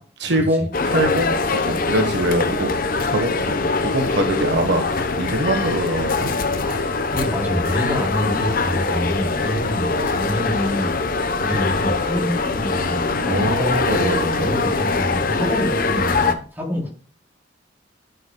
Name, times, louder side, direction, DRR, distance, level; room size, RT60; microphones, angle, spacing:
voice 1, 0.2-6.3 13.3-14.5, right 1 dB, 70° right, 5 dB, 1.2 m, -23 dB
sound 1, 0.7-16.3, left 3 dB, 50° left, 0.8 m, -22 dB
voice 2, 7.1-11.0 11.3-16.9, equal, 10° right, -3 dB, 3.5 m, -27 dB
11.0 x 6.4 x 2.3 m, 0.42 s
head